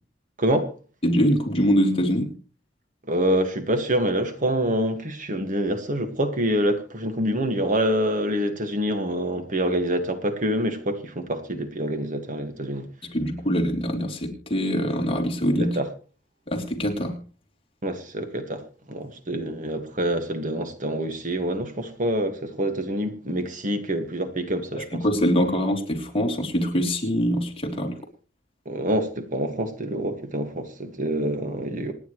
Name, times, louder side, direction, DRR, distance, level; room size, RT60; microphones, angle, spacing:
voice 1, 0.4-0.7 3.1-12.9 15.6-15.9 17.8-18.6 18.9-25.0 28.7-31.9, right 1 dB, 45° right, 1.8 m, -26 dB
voice 2, 1.0-2.3 13.1-15.8 16.5-17.2 24.8-28.0, equal, 30° left, 3.3 m, -23 dB
27.0 x 10.0 x 3.2 m
head